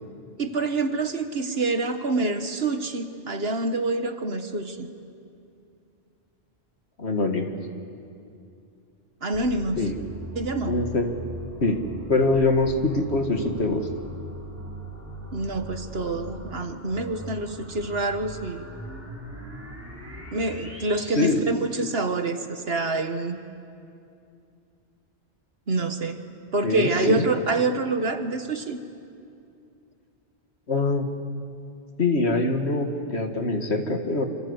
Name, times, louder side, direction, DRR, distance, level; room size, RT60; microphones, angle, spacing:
voice 1, 0.4-4.9 9.2-9.8 10.4-10.7 15.3-18.7 20.3-23.4 25.7-26.2 26.5-28.8, right 2 dB, 60° right, 8 dB, 1.6 m, -26 dB
voice 2, 7.0-7.5 9.8-9.9 10.6-11.1 11.6-11.8 12.1-13.9 21.2-21.4 26.6-27.2 30.7-31.1 32.0-34.3, left 2 dB, 65° left, 5 dB, 2.1 m, -23 dB
sound 1, 9.3-21.3, equal, 10° right, 3.8 m, -40 dB
26.5 x 26.5 x 8.1 m, 2.5 s
omnidirectional pair, 1.2 m